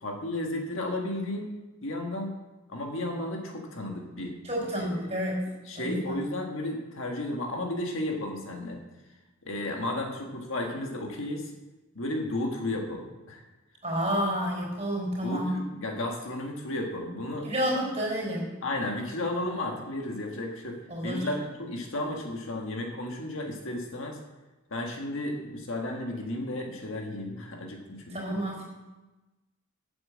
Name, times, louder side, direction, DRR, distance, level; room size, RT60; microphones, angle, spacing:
voice 1, 0.0-1.5 1.8-2.3 2.7-4.4 4.8-4.9 5.7-8.8 9.4-11.5 11.9-13.4 15.2-17.5 18.6-24.2 24.7-28.4, left 1 dB, 60° left, 1 dB, 1.6 m, -33 dB
voice 2, 4.4-6.2 13.8-15.6 17.4-18.6 20.9-21.3 28.1-28.6, equal, 30° right, -3 dB, 4.6 m, -30 dB
9.0 x 7.9 x 7.5 m, 1.1 s
head